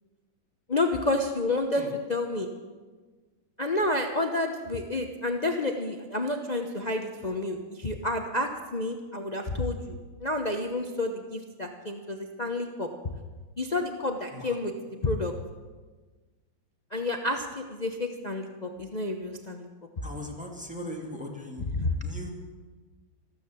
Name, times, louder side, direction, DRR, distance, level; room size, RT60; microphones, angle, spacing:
voice 1, 0.7-2.5 3.6-12.9 13.6-15.3 16.9-19.7 21.7-21.9, left 2 dB, 65° left, 4 dB, 0.4 m, -30 dB
voice 2, 20.0-21.6 22.0-22.3, left 1 dB, 5° right, 0 dB, 1.9 m, -39 dB
14.0 x 13.0 x 7.1 m, 1.4 s
omnidirectional pair, 2.2 m